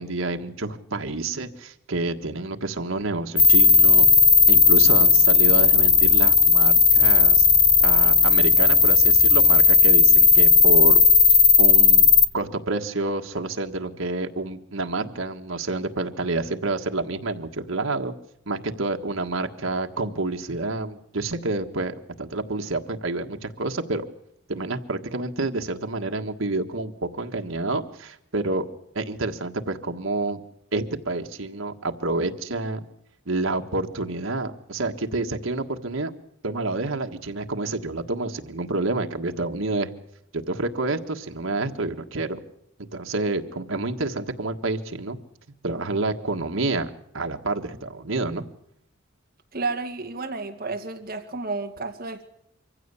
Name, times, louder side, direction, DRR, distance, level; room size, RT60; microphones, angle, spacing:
voice 1, 0.0-4.1 4.5-7.4 7.8-11.0 11.3-12.1 12.3-18.1 18.5-24.0 24.5-28.6 28.9-30.4 30.7-32.8 33.3-36.1 36.4-39.9 40.3-42.4 42.8-45.2 45.6-48.4, right 2 dB, 90° right, 5 dB, 1.6 m, -28 dB
sound 1, 3.4-12.3, left 5 dB, 20° left, 0.9 m, -15 dB
voice 2, 49.5-52.3, right 3 dB, 45° right, 5 dB, 2.1 m, -31 dB
24.5 x 15.5 x 8.4 m, 0.74 s
head